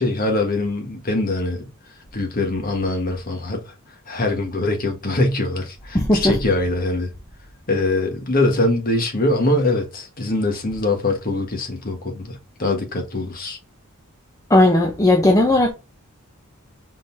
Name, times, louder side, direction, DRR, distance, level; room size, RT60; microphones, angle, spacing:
voice 1, 0.0-1.6 2.1-3.7 4.1-7.1 7.7-13.6, left 2 dB, 40° left, 1.3 m, -23 dB
voice 2, 5.9-6.4 14.5-15.7, left 1 dB, 15° left, 0.7 m, -16 dB
5.1 x 3.8 x 2.6 m
head